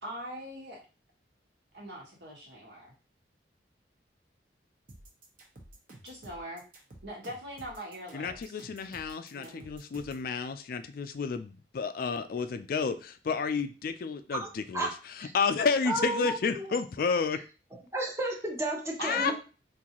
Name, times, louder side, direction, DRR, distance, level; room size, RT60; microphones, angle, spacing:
voice 1, 0.0-0.8 1.7-2.9 6.0-6.6 7.0-8.6 9.3-9.7 19.0-19.3, equal, 70° right, -2 dB, 1.3 m, -42 dB
sound 1, 4.9-10.3, right 1 dB, 50° right, 0.9 m, -51 dB
voice 2, 8.1-17.4 19.0-19.3, left 5 dB, 50° left, 10 dB, 0.4 m, -31 dB
voice 3, 15.9-16.7 17.9-19.3, right 2 dB, 15° right, 1 dB, 0.7 m, -32 dB
3.9 x 2.6 x 2.9 m, 0.34 s
head